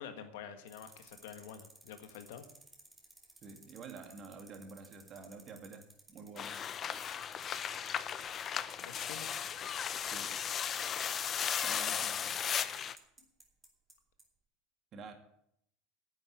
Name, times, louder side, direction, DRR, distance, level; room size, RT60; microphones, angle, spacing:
voice 1, 0.0-2.5 8.8-9.3 12.6-12.7, left 8 dB, 85° left, 8 dB, 1.7 m, -48 dB
sound 1, 0.7-13.9 14.2-14.3, right 2 dB, 10° right, 2.5 m, -57 dB
voice 2, 3.4-6.6 10.1-10.4 11.6-12.4 14.9-15.1, right 4 dB, 40° right, 6 dB, 2.3 m, -49 dB
sound 2, 6.4-13.0, left 8 dB, 35° left, 0.7 m, -36 dB
10.0 x 7.9 x 8.5 m, 0.72 s
supercardioid pair, 125°, 0 cm